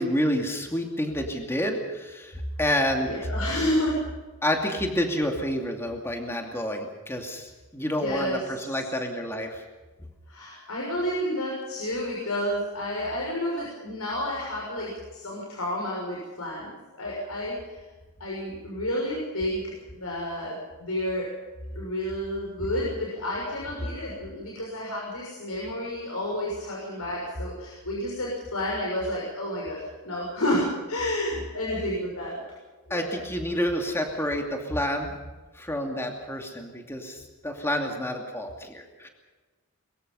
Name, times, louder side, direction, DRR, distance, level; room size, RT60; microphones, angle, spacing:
voice 1, 0.0-3.3 4.4-9.6 32.9-35.2 35.5-39.1, equal, 10° left, 2 dB, 2.5 m, -29 dB
voice 2, 3.0-4.1 8.0-8.4 10.3-16.7 17.0-17.7 18.2-21.3 21.7-32.4 32.9-33.1 37.5-37.7, left 1 dB, 80° left, -3 dB, 6.4 m, -30 dB
23.0 x 23.0 x 5.6 m, 1.2 s
head